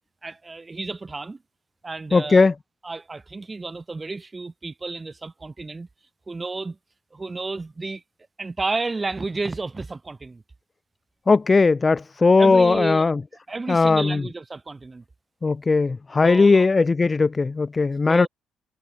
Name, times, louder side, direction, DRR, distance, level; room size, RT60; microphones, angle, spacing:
voice 1, 0.2-1.4 1.8-2.5 2.8-5.9 6.3-6.8 7.1-8.0 8.4-10.4 12.4-13.1 13.5-15.0 16.2-16.8 18.0-18.3, right 3 dB, 25° right, 6.3 m, -31 dB
voice 2, 2.1-2.5 11.3-13.2 13.7-14.2 15.4-18.3, left 4 dB, 25° left, 0.5 m, -18 dB
supercardioid pair, 80°, 0 cm